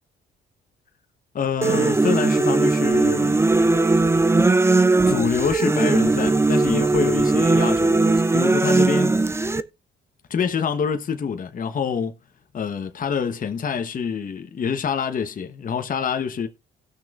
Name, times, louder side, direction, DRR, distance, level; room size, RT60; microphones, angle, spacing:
voice 1, 1.3-3.4 5.1-9.2 10.3-12.1 12.5-16.5, left 6 dB, 45° left, 1.0 m, -26 dB
sound 1, 1.6-9.6, right 3 dB, 15° right, 0.6 m, -19 dB
17.5 x 6.2 x 2.4 m
cardioid pair, 90°, 20 cm